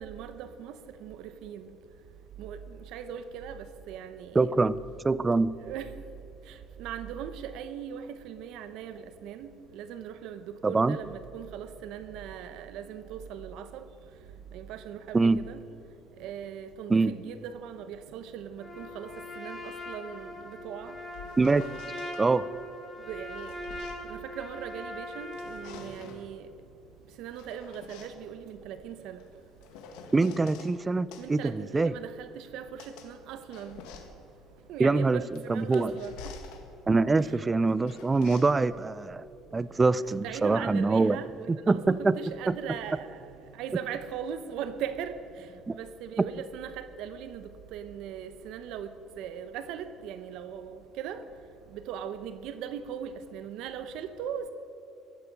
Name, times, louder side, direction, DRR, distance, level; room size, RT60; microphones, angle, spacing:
voice 1, 0.0-1.7 2.4-4.6 5.6-5.9 6.5-13.8 14.5-15.6 16.2-21.0 23.1-23.5 24.0-26.5 27.2-29.2 31.2-33.8 34.7-36.4 37.2-37.4 39.6-51.2 51.7-54.5, right 8 dB, 75° right, 0.8 m, -40 dB
voice 2, 4.4-5.5 10.6-11.0 15.1-15.4 16.9-17.1 21.4-21.6 22.2-22.5 30.1-31.9 34.8-35.2 35.5-35.9 36.9-39.3 39.5-41.2 41.5-42.2 42.5-42.6 45.7-45.8, right 3 dB, 20° right, 0.4 m, -24 dB
Trumpet, 18.6-25.8, left 1 dB, 10° left, 2.7 m, -41 dB
sound 1, 20.8-22.2 23.0-24.8 25.2-26.3 27.1-30.7 31.1-40.2, left 6 dB, 90° left, 1.7 m, -49 dB
15.5 x 13.0 x 5.3 m
cardioid pair, 115°, 0 cm